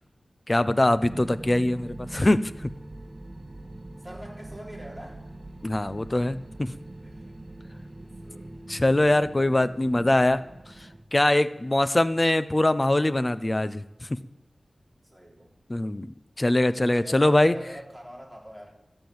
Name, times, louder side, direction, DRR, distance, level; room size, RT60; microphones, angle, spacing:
voice 1, 0.5-2.5 5.6-6.7 8.7-10.4 11.1-13.8 15.7-16.1 16.4-17.6, left 1 dB, 25° left, 13 dB, 0.7 m, -22 dB
sound 1, 1.0-11.0, right 1 dB, 35° right, 1.5 m, -43 dB
voice 2, 4.0-5.2 5.7-5.9 7.0-7.4 8.0-8.6 11.5-11.6 15.0-15.5 16.9-18.7, equal, 5° left, -1 dB, 3.6 m, -44 dB
13.5 x 8.8 x 7.9 m, 0.99 s
wide cardioid pair, 85°, 0 cm